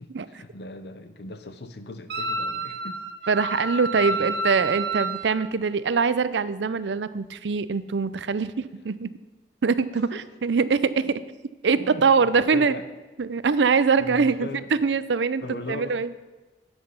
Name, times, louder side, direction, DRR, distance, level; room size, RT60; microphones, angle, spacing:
voice 1, 0.0-3.0 4.0-4.5 9.9-10.2 11.0-11.1 11.7-12.9 14.0-14.9 15.4-16.0, left 2 dB, 65° left, 10 dB, 0.8 m, -39 dB
Wind instrument woodwind instrument, 2.1-5.3, right 2 dB, 65° right, 0.9 m, -29 dB
voice 2, 3.3-9.1 9.6-11.2 11.6-12.7 13.2-15.4 15.7-16.1, right 5 dB, 85° right, 15 dB, 0.5 m, -23 dB
9.5 x 8.1 x 5.6 m, 1.2 s
head